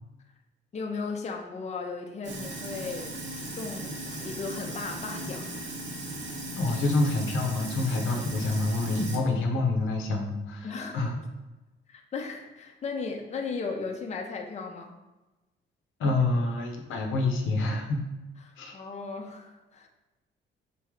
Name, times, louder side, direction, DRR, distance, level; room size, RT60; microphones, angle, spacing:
voice 1, 0.7-3.1 3.5-5.7 10.6-11.1 11.9-14.9 18.4-19.9, left 4 dB, 35° left, 2 dB, 0.6 m, -36 dB
Sink (filling or washing), 2.2-9.2, right 1 dB, 65° right, 1.0 m, -37 dB
voice 2, 6.6-10.7 10.9-11.1 16.0-18.0 18.6-18.7, left 2 dB, 80° left, 2 dB, 0.8 m, -27 dB
4.1 x 3.2 x 3.6 m, 1.1 s
cardioid pair, 90°, 20 cm